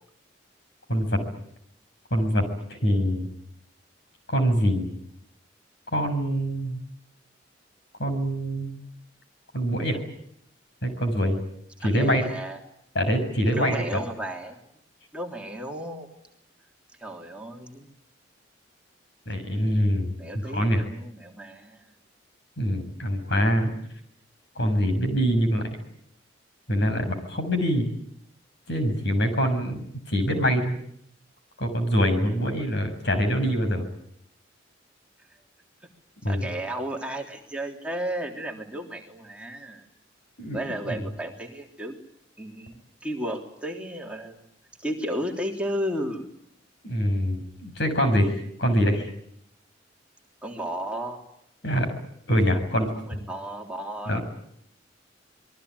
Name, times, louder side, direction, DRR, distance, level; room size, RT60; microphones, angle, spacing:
voice 1, 0.9-1.2 2.1-2.4 2.7-3.3 4.3-4.9 5.9-6.8 8.0-8.8 9.5-10.0 10.8-11.4 11.8-12.2 13.0-13.8 19.3-20.1 20.4-20.8 22.6-23.7 24.6-25.7 26.7-27.9 28.7-30.8 31.6-33.9 36.2-36.5 40.4-40.6 40.9-41.0 46.8-48.3 48.6-49.1 51.6-51.9 52.3-53.2 54.1-54.2, equal, 65° left, 7 dB, 7.0 m, -24 dB
voice 2, 11.8-12.6 13.5-14.5 15.1-16.1 17.0-17.9 20.2-21.9 36.3-39.8 40.5-42.0 42.4-44.4 44.8-46.3 50.4-51.2 53.1-54.2, right 1 dB, 5° right, 0 dB, 3.4 m, -33 dB
26.5 x 22.0 x 9.7 m, 0.73 s
head